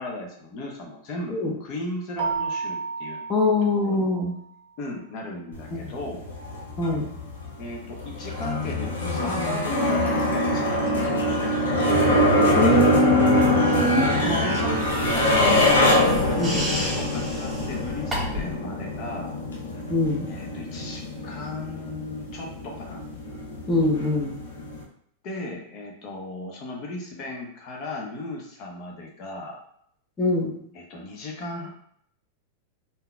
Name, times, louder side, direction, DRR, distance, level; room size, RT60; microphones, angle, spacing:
voice 1, 0.0-3.2 3.7-4.1 4.8-6.3 7.6-11.3 13.8-19.3 20.3-23.0 25.2-29.5 30.7-31.7, left 2 dB, 50° left, 0 dB, 0.9 m, -36 dB
Keyboard (musical), 2.2-4.6, right 5 dB, 65° right, 0.5 m, -32 dB
voice 2, 3.3-4.3 5.7-5.9 6.8-7.2 12.6-14.4 16.4-16.6 19.9-20.4 23.7-24.4 30.2-30.6, left 2 dB, 20° left, -1 dB, 0.8 m, -23 dB
sound 1, 5.5-24.8, left 1 dB, 80° left, 0.7 m, -24 dB
sound 2, 14.8-18.6, equal, 15° right, 1.4 m, -33 dB
3.7 x 2.7 x 2.3 m, 0.69 s
hypercardioid pair, 105°, 0 cm